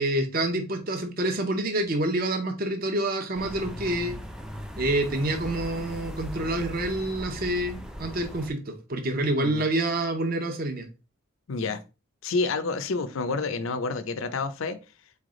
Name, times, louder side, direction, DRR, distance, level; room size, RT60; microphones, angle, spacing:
voice 1, 0.0-4.2 4.8-10.9, right 1 dB, 45° right, 0.7 m, -27 dB
sound 1, 3.3-8.5, equal, 5° right, 0.4 m, -38 dB
voice 2, 9.3-9.7 11.5-11.8 12.2-14.8, left 3 dB, 70° left, 0.5 m, -29 dB
4.1 x 3.3 x 3.7 m
head